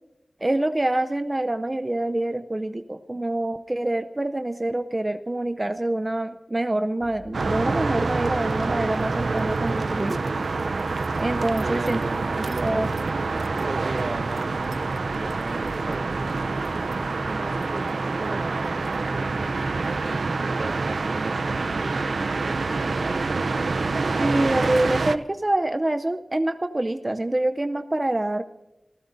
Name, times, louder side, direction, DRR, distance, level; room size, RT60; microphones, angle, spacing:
voice 1, 0.4-10.3 11.2-12.0 12.4-12.9 24.2-28.4, right 1 dB, 25° right, 8 dB, 0.6 m, -26 dB
sound 1, 7.0-21.7 22.0-22.1 22.5-23.2, left 1 dB, 35° left, 1.8 m, -47 dB
sound 2, 7.3-25.2, right 3 dB, 80° right, 0.5 m, -26 dB
voice 2, 11.6-12.2 12.4-12.8 13.6-16.8 17.2-19.9 20.4-23.3, right 3 dB, 60° right, 9 dB, 1.1 m, -36 dB
25.5 x 15.0 x 2.6 m, 0.95 s
wide cardioid pair, 80°, 0 cm